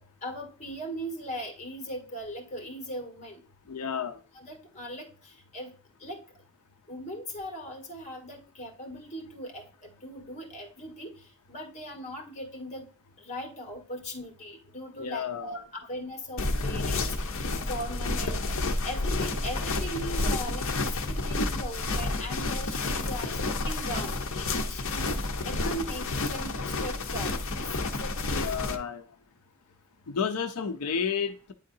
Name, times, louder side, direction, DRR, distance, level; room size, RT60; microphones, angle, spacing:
voice 1, 0.2-3.4 4.3-5.1 5.5-5.7 6.0-6.2 6.9-9.6 10.0-11.2 11.5-12.9 13.2-17.3 17.6-18.4 18.8-25.1 25.4-28.4, equal, 30° left, 1.7 m, -39 dB
voice 2, 3.7-4.2 15.0-15.6 28.2-29.0 30.1-31.5, left 6 dB, 90° left, 0.5 m, -31 dB
sound 1, 16.4-28.8, left 2 dB, 60° left, 0.8 m, -30 dB
9.8 x 3.8 x 2.7 m
head